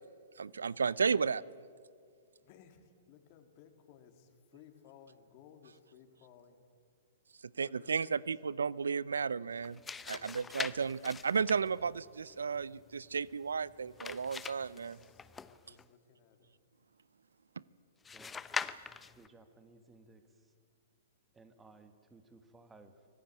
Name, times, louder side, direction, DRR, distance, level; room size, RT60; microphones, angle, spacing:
voice 1, 0.4-1.4 7.6-9.8 10.1-15.0, right 5 dB, 80° right, 22 dB, 0.6 m, -33 dB
voice 2, 2.4-6.6 7.6-8.3 10.0-10.8 14.4-16.5, left 8 dB, 45° left, 6 dB, 3.2 m, -60 dB
sound 1, 9.5-15.9 18.0-19.3, left 5 dB, 15° left, 0.8 m, -44 dB
voice 3, 19.2-20.5 21.3-23.1, right 3 dB, 10° right, 9 dB, 2.0 m, -59 dB
25.0 x 18.0 x 9.1 m, 2.1 s
hypercardioid pair, 120°, 0 cm